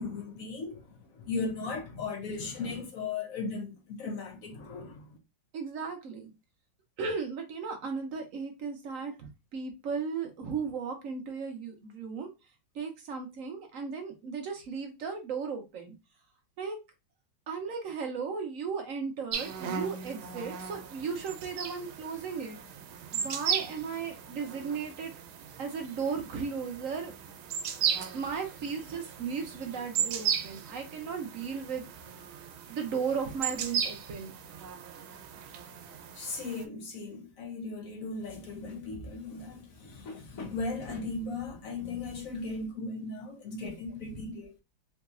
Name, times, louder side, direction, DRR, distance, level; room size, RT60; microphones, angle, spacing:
voice 1, 0.0-5.2 28.1-28.2 36.1-44.5, left 3 dB, 65° left, 0.9 m, -37 dB
voice 2, 5.5-6.3 7.0-12.3 12.7-15.9 16.6-16.8 17.5-22.6 23.1-25.1 25.6-27.1 28.1-32.1 32.7-34.3 44.1-44.2, right 5 dB, 65° right, 0.8 m, -36 dB
sound 1, 19.3-36.6, right 8 dB, 85° right, 1.4 m, -36 dB
3.9 x 2.8 x 2.4 m
omnidirectional pair, 2.2 m